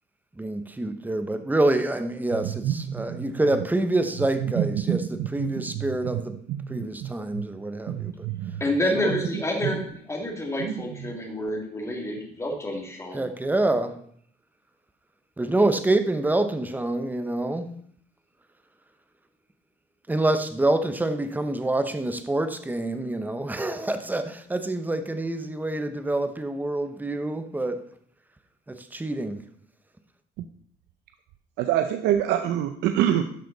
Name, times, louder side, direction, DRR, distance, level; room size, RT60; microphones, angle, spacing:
voice 1, 0.4-6.4 6.7-8.3 8.9-9.1 13.1-14.0 15.4-17.7 20.1-27.8 28.7-29.4, right 2 dB, 10° right, 0.9 m, -26 dB
voice 2, 2.4-3.3 4.4-6.2 6.5-7.4 7.9-8.6 9.1-9.2 10.6-10.7 31.6-33.2, right 11 dB, 85° right, 0.6 m, -27 dB
voice 3, 8.6-13.3, left 1 dB, 15° left, 2.5 m, -28 dB
12.0 x 6.3 x 4.1 m
cardioid pair, 110°, 17 cm